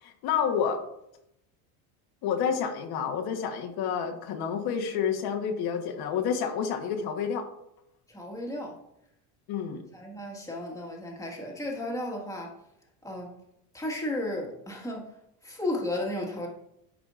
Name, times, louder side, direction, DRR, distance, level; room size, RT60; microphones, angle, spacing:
voice 1, 0.0-0.8 2.2-7.4 9.5-9.8, left 7 dB, 55° left, 4 dB, 1.3 m, -29 dB
voice 2, 8.1-8.8 9.9-12.6 13.0-13.3 13.7-15.1 15.4-16.5, left 1 dB, 5° left, -1 dB, 1.7 m, -34 dB
11.0 x 5.0 x 2.5 m, 0.79 s
supercardioid pair, 120°, 44 cm